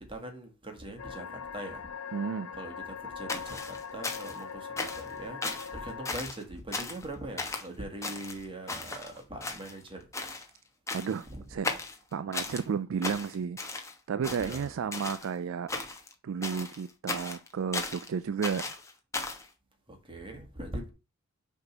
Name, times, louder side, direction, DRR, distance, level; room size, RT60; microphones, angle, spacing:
voice 1, 0.0-1.9 2.6-5.4 5.7-10.1 11.3-11.4 14.2-14.7 19.9-20.9, right 1 dB, 25° right, 1.8 m, -42 dB
sound 1, 1.0-6.1, left 6 dB, 80° left, 0.6 m, -41 dB
voice 2, 2.1-2.5 10.9-11.7 12.1-13.6 14.1-15.7 16.2-18.7, right 6 dB, 65° right, 0.3 m, -32 dB
sound 2, 3.3-4.4 4.8-5.1 5.4-5.7 6.1-6.4 6.7-7.1 7.4-7.7 8.0-9.1 9.4-9.9 10.1-10.5 10.9-11.3 11.6-12.6 13.0-13.9 14.2-15.3 15.7-16.1 16.4-18.1 18.4-19.5, left 3 dB, 15° left, 1.1 m, -36 dB
6.6 x 3.7 x 5.9 m
head